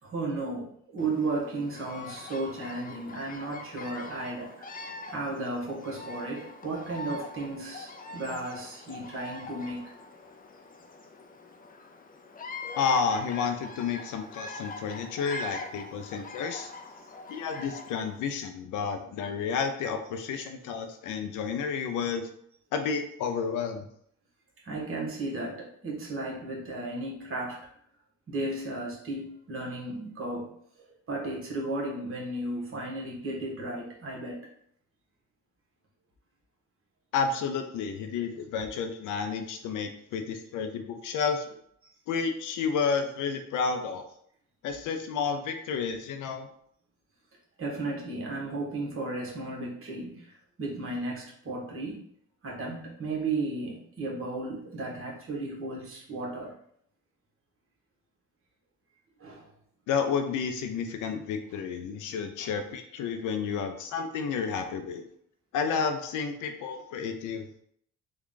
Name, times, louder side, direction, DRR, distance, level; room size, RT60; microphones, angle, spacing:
voice 1, 0.0-4.7 5.1-9.9 24.6-27.7 28.3-34.4 47.6-50.3 50.6-52.0 52.4-56.5 59.2-59.5 62.4-62.5, right 2 dB, 45° right, -3 dB, 1.4 m, -34 dB
Bird vocalization bird call bird song, 1.0-18.2, left 3 dB, 30° left, 0.5 m, -43 dB
voice 2, 12.8-16.7 17.3-22.3 22.7-23.9 37.1-41.5 42.1-44.0 44.6-46.5 59.9-65.0 65.5-67.6, left 6 dB, 80° left, 6 dB, 0.5 m, -31 dB
3.5 x 2.3 x 3.7 m, 0.67 s
cardioid pair, 90°, 30 cm